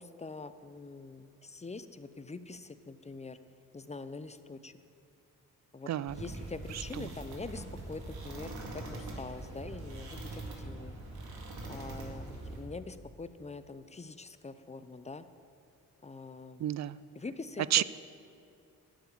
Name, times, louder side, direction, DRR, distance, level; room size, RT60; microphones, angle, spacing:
voice 1, 0.0-3.4 3.7-4.7 5.7-11.0 11.7-15.2 16.0-16.6 17.1-17.8, left 3 dB, 15° left, 12 dB, 0.7 m, -44 dB
sound 1, 6.1-12.6, right 2 dB, 65° right, 2.1 m, -43 dB
voice 2, 16.6-17.0 17.7-17.8, right 12 dB, 45° right, 17 dB, 0.4 m, -29 dB
10.5 x 7.1 x 7.0 m, 2.6 s
hypercardioid pair, 40°, 39 cm